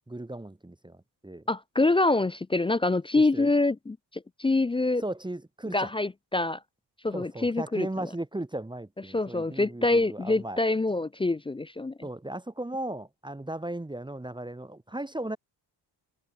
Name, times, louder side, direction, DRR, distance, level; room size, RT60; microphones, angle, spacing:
voice 1, 0.1-1.4 3.3-3.5 5.0-5.9 7.1-10.6 12.0-15.4, right 1 dB, 10° right, 1.6 m, -36 dB
voice 2, 1.5-5.0 5.7-6.6 7.0-8.1 9.1-12.0, left 2 dB, 15° left, 0.4 m, -26 dB
supercardioid pair, 70°, 43 cm